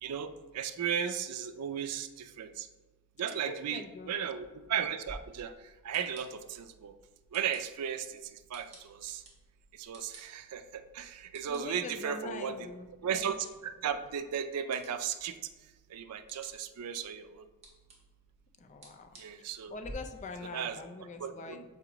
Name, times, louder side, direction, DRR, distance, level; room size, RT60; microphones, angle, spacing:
voice 1, 0.0-2.7 3.2-5.5 5.8-6.9 7.3-8.2 8.5-9.2 9.8-12.7 13.0-13.4 13.6-15.4 15.9-17.4 19.2-19.7 20.5-21.6, right 8 dB, 85° right, 11 dB, 0.4 m, -35 dB
voice 2, 3.3-4.1 11.5-12.9 18.6-19.1 19.7-21.6, left 3 dB, 35° left, 6 dB, 0.4 m, -43 dB
sound 1, 5.0-19.9, right 1 dB, 30° right, 1.4 m, -56 dB
6.9 x 4.7 x 3.0 m, 1.2 s
head